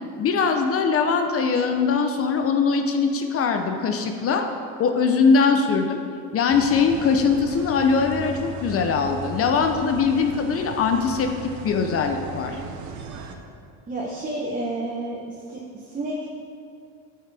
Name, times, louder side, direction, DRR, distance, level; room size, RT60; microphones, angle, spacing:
voice 1, 0.2-4.5 4.8-6.0 6.3-12.6, left 5 dB, 40° left, 5 dB, 0.7 m, -21 dB
sound 1, 6.5-13.3, right 5 dB, 55° right, 0.9 m, -37 dB
voice 2, 13.9-16.3, right 1 dB, 25° right, -3 dB, 1.1 m, -30 dB
8.8 x 6.6 x 3.4 m, 2.3 s
supercardioid pair, 95°, 35 cm